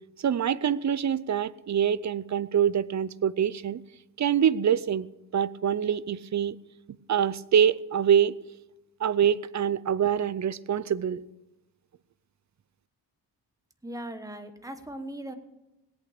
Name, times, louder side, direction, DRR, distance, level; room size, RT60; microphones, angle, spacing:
voice 1, 0.2-3.8 4.2-5.1 5.3-6.6 7.1-8.3 9.0-11.2, right 8 dB, 45° right, 0.5 m, -25 dB
voice 2, 13.8-15.3, right 1 dB, 10° right, 1.1 m, -38 dB
17.5 x 8.4 x 6.6 m
wide cardioid pair, 135°, 41 cm